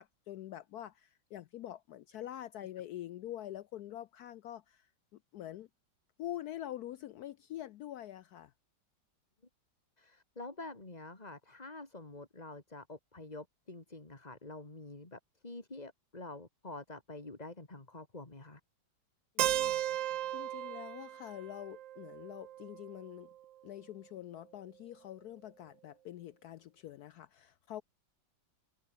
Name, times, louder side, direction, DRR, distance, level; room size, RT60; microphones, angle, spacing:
voice 1, 0.0-4.9 5.3-5.7 6.2-8.5 19.4-19.8 20.3-23.3 23.6-27.8, left 12 dB, 75° left, 0.9 m, -45 dB
voice 2, 10.0-18.6, left 2 dB, 20° left, 2.7 m, -47 dB
Keyboard (musical), 19.4-23.3, right 12 dB, 80° right, 0.7 m, -36 dB
omnidirectional pair, 2.1 m